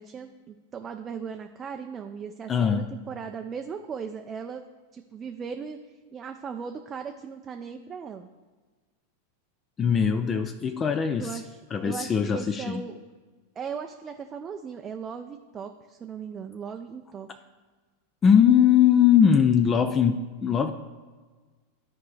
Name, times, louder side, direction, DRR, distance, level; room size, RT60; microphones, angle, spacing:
voice 1, 0.0-4.6 4.9-5.8 6.1-8.3 11.2-13.0 13.6-17.3, right 6 dB, 30° right, 5 dB, 0.4 m, -38 dB
voice 2, 2.5-2.9 9.8-11.4 11.7-12.8 18.2-20.7, left 8 dB, 25° left, 8 dB, 0.4 m, -21 dB
12.0 x 4.5 x 3.2 m, 1.4 s
hypercardioid pair, 100°, 0 cm